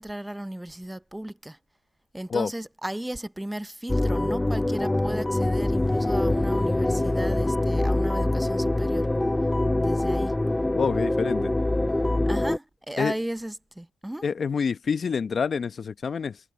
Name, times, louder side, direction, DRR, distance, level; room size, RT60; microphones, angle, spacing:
voice 1, 0.0-1.6 2.1-9.1 9.8-10.3 12.3-14.3, right 1 dB, 5° right, 0.8 m, -35 dB
sound 1, 3.9-12.6, left 1 dB, 10° left, 0.3 m, -24 dB
voice 2, 10.7-11.5 13.0-13.1 14.2-16.4, left 6 dB, 45° left, 0.9 m, -27 dB
cardioid pair, 90°, 0 cm